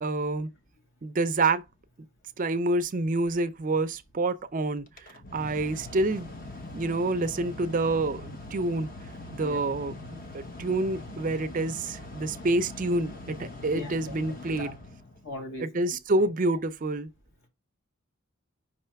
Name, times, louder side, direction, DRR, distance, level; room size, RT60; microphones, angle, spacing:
voice 1, 0.0-0.5 1.0-1.6 2.4-6.3 6.7-8.9 9.3-14.7 15.6-17.1, right 2 dB, 35° right, 0.4 m, -28 dB
Mechanical fan, 4.9-15.4, left 2 dB, 40° left, 0.9 m, -42 dB
voice 2, 13.7-14.2 14.6-14.7 15.2-15.7 16.1-16.3, left 2 dB, 55° left, 1.9 m, -39 dB
5.3 x 3.2 x 5.6 m
head